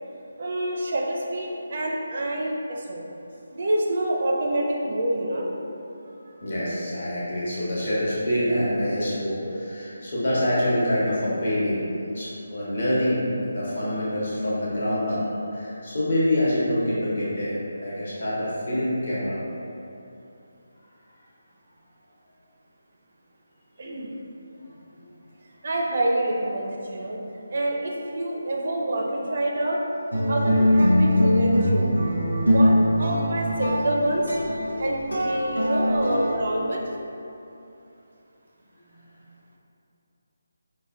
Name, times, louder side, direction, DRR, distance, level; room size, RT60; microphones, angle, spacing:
voice 1, 0.4-3.0 3.5-5.5 6.3-6.4 23.8-24.1 25.6-27.2 27.5-29.8 30.3-31.9 32.3-34.4 34.8-36.8, right 1 dB, 45° right, -2 dB, 0.4 m, -27 dB
voice 2, 6.4-11.8 12.1-15.2 15.5-19.4, left 1 dB, 55° left, -8 dB, 1.0 m, -26 dB
sound 1, 30.1-36.3, equal, 90° left, 0.7 m, -22 dB
5.1 x 2.1 x 2.3 m, 2.8 s
figure-of-eight pair, 150°, 0 cm